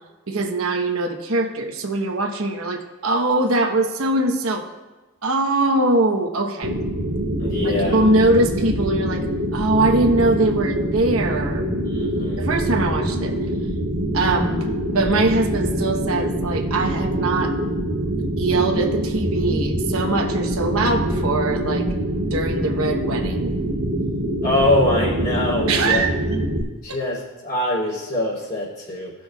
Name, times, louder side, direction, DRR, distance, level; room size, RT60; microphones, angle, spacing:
voice 1, 0.3-4.6 5.2-6.7 7.6-9.2 9.5-11.7 12.4-13.3 14.1-14.7 14.9-17.5 18.4-21.9 22.3-23.5 25.7-26.1 26.9-27.0, right 2 dB, 75° right, 3 dB, 1.0 m, -22 dB
sound 1, 6.6-26.6, right 1 dB, 45° right, 1.6 m, -24 dB
voice 2, 7.4-8.0 11.8-12.5 24.4-26.0 26.8-29.1, left 1 dB, 40° left, -5 dB, 3.2 m, -23 dB
17.5 x 6.3 x 2.3 m, 1.2 s
head